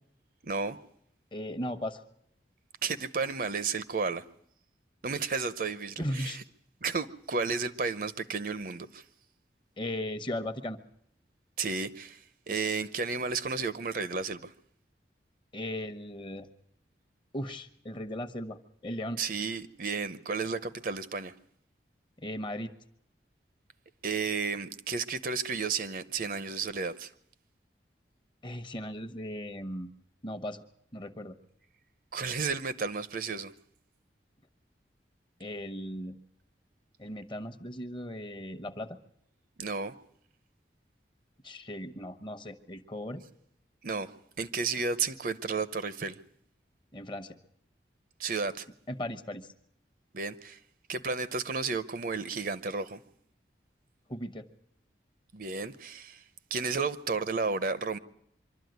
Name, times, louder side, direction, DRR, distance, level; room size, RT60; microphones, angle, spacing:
voice 1, 0.4-0.8 2.8-4.2 5.0-6.4 6.8-9.0 11.6-12.2 12.5-14.5 19.2-21.3 24.0-27.1 32.1-33.5 39.6-39.9 43.8-44.1 44.4-46.2 48.2-48.7 50.1-50.6 50.9-53.0 55.3-56.2 56.5-58.0, right 4 dB, 50° right, 0.7 m, -32 dB
voice 2, 1.3-2.0 6.0-6.4 9.8-10.8 15.5-16.5 17.3-19.2 22.2-22.7 28.4-29.9 30.2-30.6 30.9-31.4 35.4-36.2 37.0-39.0 41.4-43.2 46.9-47.4 48.9-49.5 54.1-54.5, left 1 dB, 25° left, 1.0 m, -37 dB
24.5 x 12.5 x 9.4 m
head